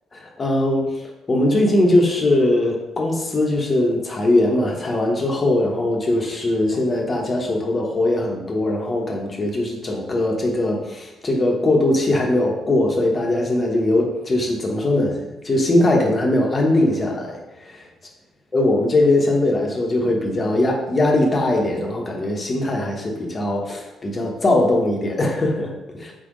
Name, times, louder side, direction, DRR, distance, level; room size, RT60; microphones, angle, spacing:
voice 1, 0.1-0.9 1.3-17.8 18.5-26.1, left 1 dB, 35° left, 0 dB, 1.0 m, -20 dB
4.1 x 3.4 x 3.8 m, 1.0 s
hypercardioid pair, 45°, 0 cm